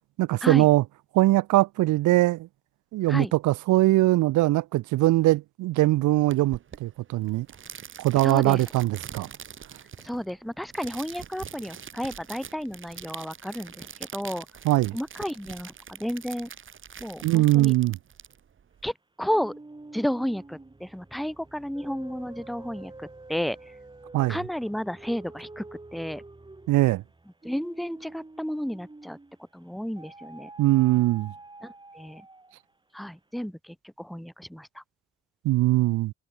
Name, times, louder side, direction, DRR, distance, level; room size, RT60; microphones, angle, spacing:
voice 1, 0.2-0.8 1.1-2.5 2.9-7.5 8.0-9.3 14.6-15.0 17.2-18.0 24.1-24.4 26.7-27.0 30.6-31.3 35.4-36.1, right 17 dB, 75° right, 0.5 m, -21 dB
sound 1, 6.3-18.9, right 7 dB, 40° right, 1.4 m, -44 dB
voice 2, 8.2-8.6 10.0-14.5 14.9-16.5 17.0-17.7 18.8-19.5 19.9-23.7 24.3-25.7 25.9-26.2 27.4-29.2 29.5-30.5 31.6-32.3 32.9-34.8, equal, ahead, 0.7 m, -32 dB
sound 2, 19.2-29.4 30.0-32.7, right 2 dB, 15° right, 3.5 m, -47 dB
cardioid pair, 90°, 30 cm